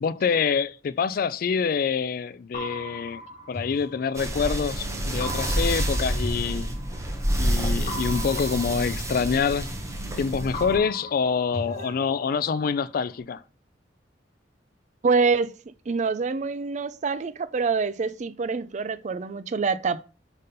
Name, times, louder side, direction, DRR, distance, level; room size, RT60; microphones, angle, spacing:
voice 1, 0.0-3.2 3.5-6.7 7.4-9.7 10.2-13.4, left 6 dB, 50° left, 0.3 m, -26 dB
sound 1, 2.5-4.6 5.2-7.3 7.9-10.2 10.5-12.6, left 1 dB, 35° left, 1.0 m, -38 dB
sound 2, 4.1-10.8, right 1 dB, 15° right, 1.1 m, -28 dB
voice 2, 15.0-15.5 15.9-20.0, right 4 dB, 40° right, 0.4 m, -26 dB
5.3 x 4.1 x 5.2 m
head